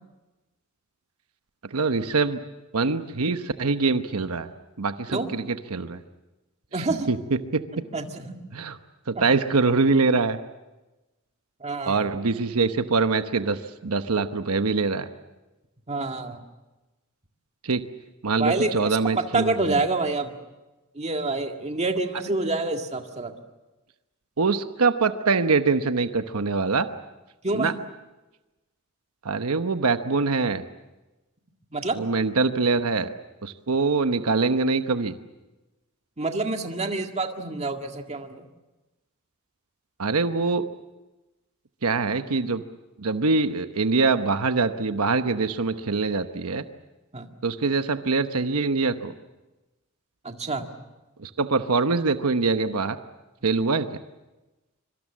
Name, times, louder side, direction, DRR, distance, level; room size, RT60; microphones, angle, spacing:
voice 1, 1.6-2.4 2.7-4.5 4.8-6.0 6.8-7.2 7.5-7.6 8.5-8.8 9.1-10.4 11.9-15.1 17.6-17.8 18.2-19.8 24.4-26.9 27.5-27.7 29.2-30.6 31.9-33.1 33.4-35.1 40.0-40.6 41.8-42.6 43.0-46.6 47.4-49.1 51.2-53.0 53.4-53.9, right 4 dB, 90° right, 9 dB, 1.0 m, -24 dB
voice 2, 6.7-7.1 7.7-8.4 9.2-9.3 11.6-12.1 15.9-16.4 18.4-20.3 21.0-23.3 27.4-27.7 31.7-32.0 36.2-38.5 47.1-47.3 50.2-50.7, right 3 dB, 30° right, 4 dB, 1.9 m, -27 dB
25.0 x 24.5 x 7.4 m, 1.1 s
head